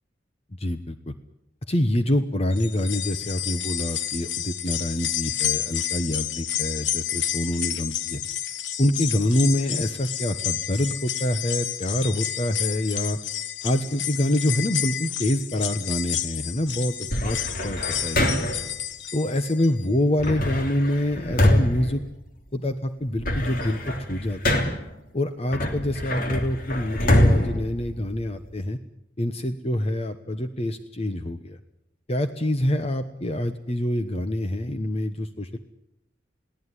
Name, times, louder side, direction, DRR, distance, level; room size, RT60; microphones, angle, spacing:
voice 1, 0.6-1.1 1.7-8.2 8.8-13.2 13.6-18.4 19.1-22.0 22.5-24.8 25.1-28.8 29.2-31.6 32.1-35.6, left 1 dB, 35° left, 9 dB, 1.1 m, -26 dB
sound 1, 2.5-19.8 20.2-20.3 21.4-21.5, left 11 dB, 80° left, 1.4 m, -30 dB
sound 2, 17.1-18.7 20.2-22.7 23.0-25.0 25.5-28.5, left 1 dB, 50° left, 3.3 m, -24 dB
22.5 x 17.0 x 9.9 m, 0.83 s
head